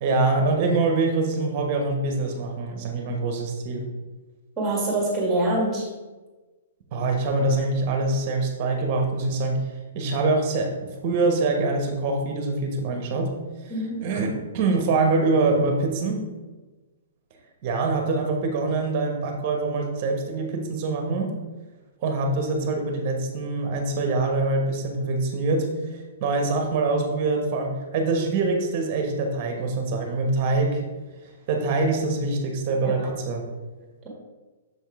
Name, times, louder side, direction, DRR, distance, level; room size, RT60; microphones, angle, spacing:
voice 1, 0.0-3.9 6.9-9.6 9.9-13.3 13.6-13.7 14.0-14.3 14.5-16.3 17.6-21.3 22.0-30.8 31.5-33.4, right 3 dB, 30° right, 3 dB, 1.1 m, -24 dB
voice 2, 4.6-5.9 13.7-14.0 32.8-32.9, right 1 dB, 10° right, -3 dB, 1.8 m, -24 dB
6.9 x 3.6 x 4.7 m, 1.2 s
hypercardioid pair, 165°, 0 cm